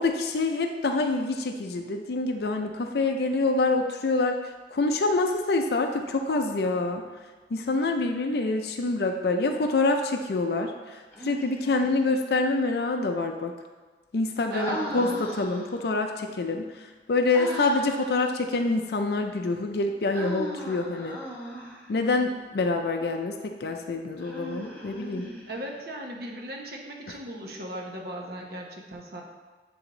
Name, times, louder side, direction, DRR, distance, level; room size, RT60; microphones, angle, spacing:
voice 1, 0.0-7.0 7.5-13.5 14.1-16.7 17.1-21.2 21.9-25.3, left 3 dB, 60° left, 4 dB, 0.4 m, -26 dB
Human voice, 11.1-12.0 14.5-15.8 17.3-18.1 20.1-21.9 24.2-25.8, right 1 dB, 10° left, 1.2 m, -37 dB
voice 2, 14.5-15.2 25.5-29.2, right 1 dB, 55° right, 0 dB, 0.9 m, -37 dB
8.8 x 3.5 x 3.8 m, 1.4 s
head